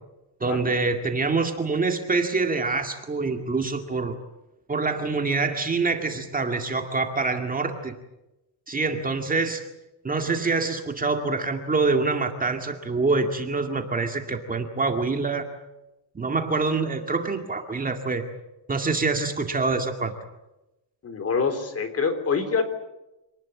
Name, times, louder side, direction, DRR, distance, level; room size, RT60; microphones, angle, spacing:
voice 1, 0.4-4.2 4.7-7.9 8.7-9.6 10.0-15.5 16.1-18.2 18.7-20.1, right 3 dB, 20° right, 5 dB, 2.1 m, -25 dB
voice 2, 21.0-22.6, left 5 dB, 35° left, 10 dB, 3.8 m, -25 dB
27.5 x 19.5 x 8.5 m, 0.96 s
cardioid pair, 140°, 43 cm